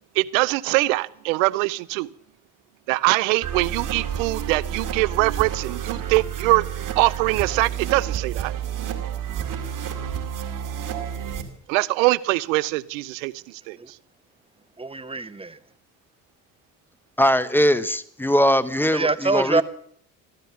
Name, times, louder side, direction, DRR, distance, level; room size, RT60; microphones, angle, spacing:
voice 1, 0.2-2.1 2.9-6.6 7.0-8.5 11.7-14.0, right 21 dB, 85° right, 21 dB, 0.5 m, -23 dB
sound 1, 3.4-11.4, right 9 dB, 55° right, 2.5 m, -30 dB
voice 2, 14.8-15.6 18.9-19.6, right 3 dB, 15° right, 13 dB, 1.1 m, -24 dB
voice 3, 17.2-19.6, equal, 5° left, 13 dB, 1.2 m, -20 dB
14.5 x 12.5 x 7.1 m, 0.65 s
hypercardioid pair, 60°, 38 cm